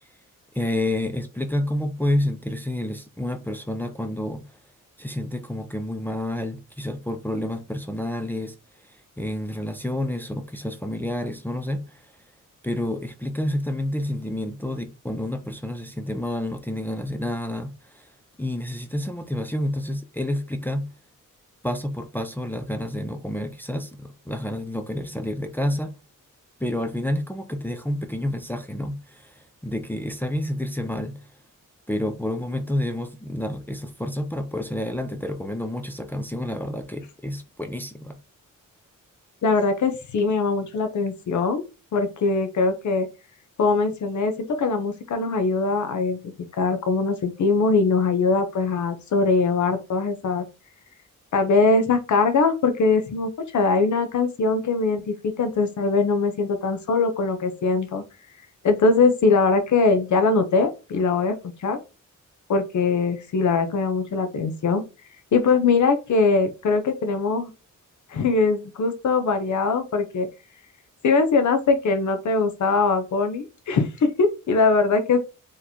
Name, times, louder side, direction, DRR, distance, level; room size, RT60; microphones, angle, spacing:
voice 1, 0.5-4.5 5.0-8.5 8.9-12.1 12.6-18.1 18.4-20.9 21.6-25.9 26.6-31.3 31.9-38.2, left 1 dB, 5° left, 0.4 m, -29 dB
voice 2, 39.4-41.6 41.9-43.1 43.6-44.3 44.6-50.5 51.3-58.0 58.6-61.8 62.5-64.8 65.3-67.5 68.1-70.3 71.0-75.2, left 4 dB, 60° left, 0.7 m, -21 dB
4.0 x 3.2 x 2.7 m
wide cardioid pair, 140°, 33 cm